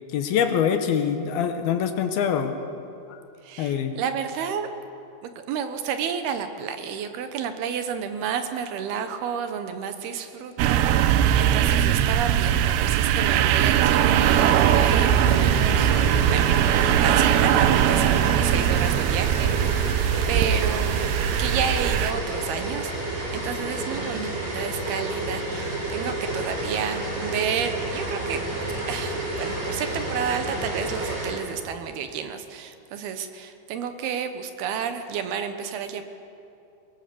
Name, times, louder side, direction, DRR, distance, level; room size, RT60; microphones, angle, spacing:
voice 1, 0.1-2.6 3.1-3.2 3.6-3.9, left 8 dB, 70° left, 7 dB, 2.9 m, -24 dB
voice 2, 3.4-4.7 5.2-15.9 16.3-20.0 20.3-28.4 28.7-36.0, right 7 dB, 75° right, 8 dB, 3.0 m, -31 dB
sound 1, 10.6-22.1, right 10 dB, 90° right, 2.9 m, -20 dB
sound 2, 14.1-31.3, right 2 dB, 55° right, 7.1 m, -30 dB
23.0 x 22.0 x 6.9 m, 2.7 s
omnidirectional pair, 4.7 m